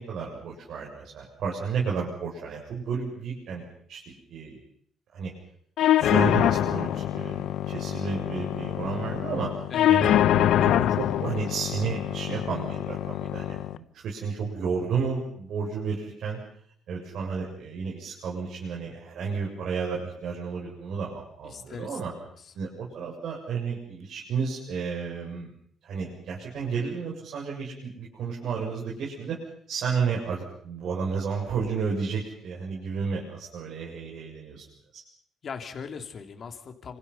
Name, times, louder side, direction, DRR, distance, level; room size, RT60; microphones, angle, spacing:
voice 1, 0.0-3.6 3.9-4.6 5.1-5.3 6.0-13.6 13.9-16.4 16.9-22.1 22.5-25.5 25.8-29.4 29.7-34.6 34.9-35.0, right 5 dB, 60° right, -3 dB, 7.5 m, -32 dB
sound 1, 5.8-13.8, left 12 dB, 75° left, 1.1 m, -25 dB
voice 2, 21.4-22.5 35.4-37.0, left 6 dB, 40° left, 5 dB, 3.2 m, -40 dB
29.5 x 27.0 x 5.8 m, 0.65 s
cardioid pair, 145°, 0 cm